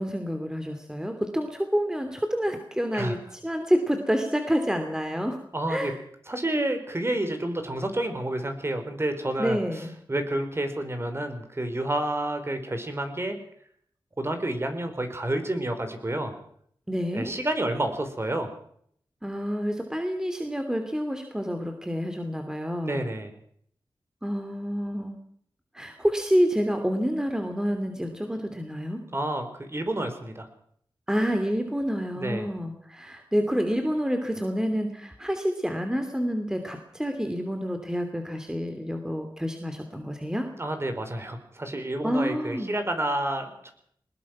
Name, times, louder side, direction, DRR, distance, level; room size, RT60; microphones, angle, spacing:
voice 1, 0.0-5.4 5.7-6.0 9.4-9.9 16.9-17.3 19.2-23.0 24.2-25.2 25.7-29.0 31.1-40.5 42.0-42.7, equal, 5° right, 5 dB, 2.7 m, -28 dB
voice 2, 5.5-5.9 6.3-13.4 14.2-16.3 17.1-18.5 22.8-23.3 29.1-30.5 32.2-32.5 40.6-43.7, right 1 dB, 30° right, 7 dB, 4.4 m, -29 dB
21.0 x 20.5 x 6.1 m, 0.64 s
wide cardioid pair, 80°, 9 cm